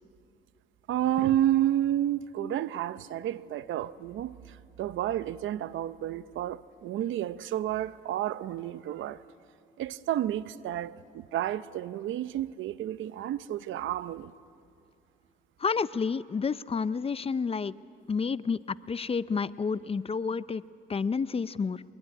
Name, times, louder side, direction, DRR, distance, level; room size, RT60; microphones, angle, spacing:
voice 1, 0.9-4.3 4.8-9.2 9.8-14.3, right 12 dB, 75° right, 0.7 m, -30 dB
voice 2, 15.6-17.7 18.1-20.6 20.9-21.8, left 5 dB, 30° left, 0.6 m, -30 dB
23.5 x 21.5 x 9.9 m
cardioid pair, 90°, 20 cm